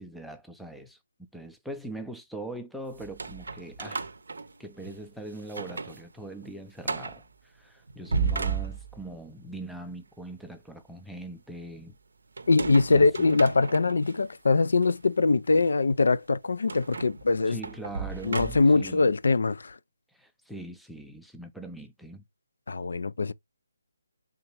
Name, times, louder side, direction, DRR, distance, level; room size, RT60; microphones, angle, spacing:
voice 1, 0.0-4.1 4.6-12.0 12.9-13.4 17.5-19.1 20.1-22.2, right 2 dB, ahead, 0.4 m, -41 dB
sound 1, 3.0-5.0 5.4-6.0 6.3-6.4 6.8-7.2 7.9-9.2 12.4-14.1 14.8-14.9 16.7-18.9, right 5 dB, 70° right, 0.5 m, -34 dB
voice 2, 12.5-17.6 18.2-19.8 22.7-23.3, left 3 dB, 70° left, 0.3 m, -23 dB
3.5 x 2.9 x 2.9 m
figure-of-eight pair, 155°, 0 cm